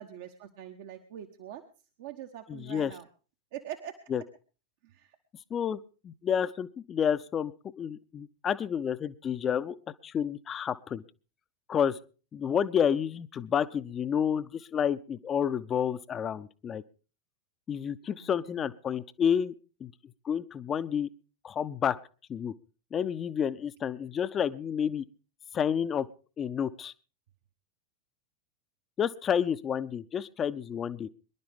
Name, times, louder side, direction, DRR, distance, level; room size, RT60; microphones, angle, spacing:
voice 1, 0.0-1.6 2.0-3.1 3.5-4.0 4.8-5.2 18.2-18.7, right 11 dB, 50° right, 6 dB, 1.1 m, -43 dB
voice 2, 2.5-2.9 4.1-4.2 5.5-5.8 6.0-9.8 10.0-11.0 11.7-12.0 12.3-16.8 17.7-19.5 19.8-19.9 20.2-21.1 21.4-22.0 22.3-22.5 22.9-25.0 25.5-26.1 26.4-26.9 29.0-31.1, left 8 dB, 25° left, 14 dB, 0.7 m, -30 dB
24.5 x 11.5 x 3.5 m, 0.36 s
figure-of-eight pair, 90°, 0 cm